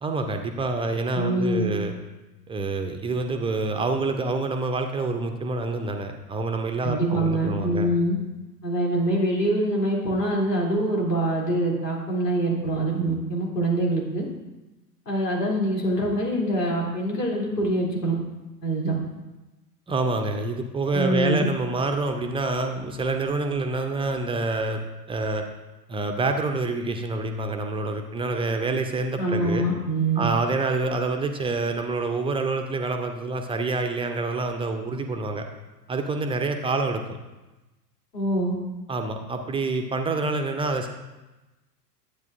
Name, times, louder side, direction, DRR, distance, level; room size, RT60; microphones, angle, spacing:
voice 1, 0.0-1.9 2.5-7.9 19.9-24.8 25.1-25.4 25.9-29.6 30.2-35.5 35.9-37.2 38.9-40.9, right 3 dB, 10° right, 6 dB, 0.6 m, -27 dB
voice 2, 1.1-1.7 6.8-8.2 8.6-14.3 15.0-18.2 18.6-18.9 20.9-21.4 29.2-30.2 38.1-38.5, right 1 dB, 75° left, -3 dB, 3.4 m, -24 dB
12.0 x 8.6 x 2.6 m, 1.1 s
figure-of-eight pair, 90°, 49 cm